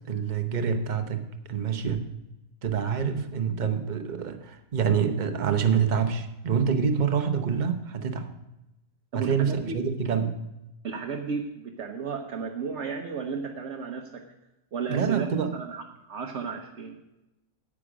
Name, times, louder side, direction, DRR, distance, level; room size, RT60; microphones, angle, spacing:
voice 1, 0.1-2.1 2.6-8.3 9.1-10.4 14.9-15.6, right 7 dB, 35° right, 6 dB, 0.9 m, -26 dB
voice 2, 9.1-9.8 10.8-14.2 14.7-15.8 16.1-16.9, right 5 dB, 55° right, 2 dB, 1.1 m, -33 dB
9.8 x 8.6 x 5.0 m, 0.94 s
omnidirectional pair, 1.6 m